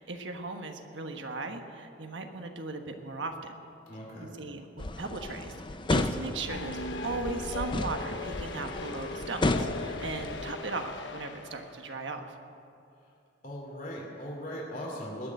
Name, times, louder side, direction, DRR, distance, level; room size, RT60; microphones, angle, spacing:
voice 1, 0.0-3.5 4.4-5.5 5.9-12.3, right 3 dB, 85° right, 5 dB, 1.4 m, -37 dB
voice 2, 3.9-4.3 13.4-15.3, equal, 50° left, -2 dB, 2.8 m, -39 dB
sound 1, 4.8-10.5, left 2 dB, 25° left, 0.6 m, -33 dB
sound 2, 6.5-11.8, left 3 dB, 80° left, 1.1 m, -39 dB
20.5 x 6.9 x 9.5 m, 2.7 s
head